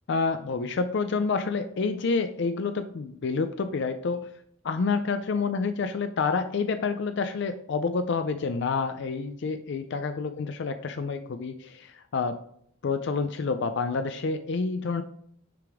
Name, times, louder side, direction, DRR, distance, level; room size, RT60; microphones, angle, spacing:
voice 1, 0.1-4.3 4.6-12.4 12.8-15.0, left 4 dB, 55° left, 9 dB, 0.4 m, -28 dB
6.8 x 5.0 x 3.5 m, 0.67 s
head